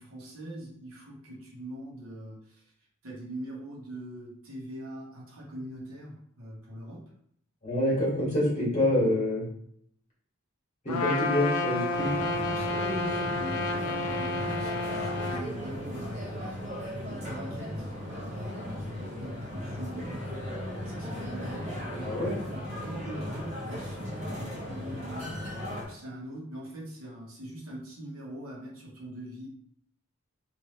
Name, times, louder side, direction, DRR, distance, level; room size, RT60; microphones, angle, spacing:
voice 1, 0.0-2.6 3.0-7.0 11.7-16.6 16.9-18.7 19.0-20.1 20.8-29.5, right 1 dB, 85° right, -3 dB, 1.0 m, -42 dB
voice 2, 7.6-9.4 10.8-12.1 22.0-22.4, left 1 dB, 35° left, -6 dB, 1.5 m, -26 dB
Trumpet, 10.9-15.4, left 2 dB, 85° left, 0.4 m, -30 dB
sound 1, 11.9-25.8, left 1 dB, 35° right, 0.8 m, -36 dB
3.1 x 2.6 x 2.9 m, 0.69 s
head